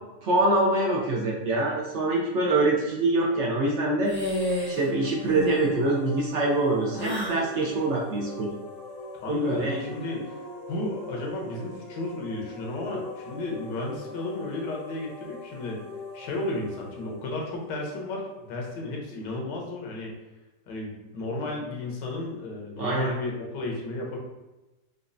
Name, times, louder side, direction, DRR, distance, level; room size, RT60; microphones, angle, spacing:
voice 1, 0.2-4.2 4.7-8.5 9.3-9.7 22.8-23.1, right 2 dB, 65° right, -2 dB, 0.7 m, -24 dB
sound 1, 4.0-4.9 5.2-5.7 6.9-7.4, equal, 10° left, 0.7 m, -30 dB
sound 2, 4.1-18.8, left 3 dB, 65° left, 0.8 m, -42 dB
voice 2, 9.1-10.4 10.7-15.8 16.1-20.1 20.7-24.2, left 2 dB, 85° left, -1 dB, 1.5 m, -33 dB
5.1 x 2.3 x 2.5 m, 1.1 s
omnidirectional pair, 1.8 m